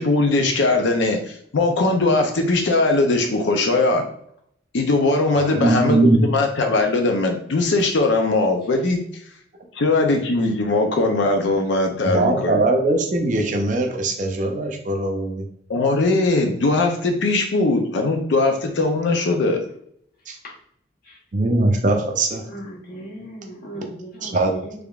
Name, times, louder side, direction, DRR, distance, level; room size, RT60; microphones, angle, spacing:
voice 1, 0.0-4.0 4.7-9.0 9.7-12.6 15.7-19.6, left 2 dB, 70° left, 4 dB, 0.5 m, -20 dB
voice 2, 5.3-6.2 12.1-15.5 20.3-20.4 21.3-22.4 23.7-23.8 24.2-24.6, right 2 dB, 40° right, 3 dB, 0.5 m, -20 dB
voice 3, 22.4-24.7, right 1 dB, 50° left, -3 dB, 1.2 m, -37 dB
3.5 x 3.3 x 2.3 m, 0.66 s
head